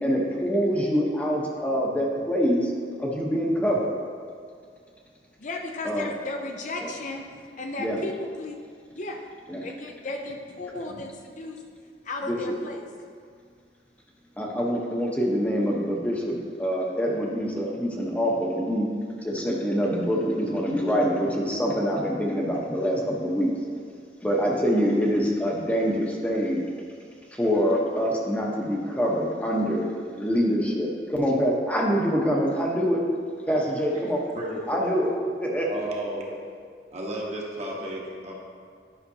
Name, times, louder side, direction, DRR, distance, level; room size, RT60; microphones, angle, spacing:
voice 1, 0.0-2.7 3.0-3.9 5.8-6.1 6.8-6.9 7.8-8.0 9.5-9.6 12.3-12.4 14.4-18.9 19.2-23.5 24.2-26.6 27.3-29.9 30.2-33.0 33.5-34.2 34.7-35.1 35.4-35.9, equal, 10° left, -2 dB, 0.9 m, -25 dB
voice 2, 5.4-7.2 7.6-8.6 9.0-9.2 9.6-11.6 12.1-12.8, left 2 dB, 45° left, 2 dB, 0.5 m, -34 dB
voice 3, 34.3-35.0 35.7-36.3 36.9-38.3, right 1 dB, 40° right, -3 dB, 1.2 m, -33 dB
10.5 x 5.8 x 2.8 m, 2.1 s
head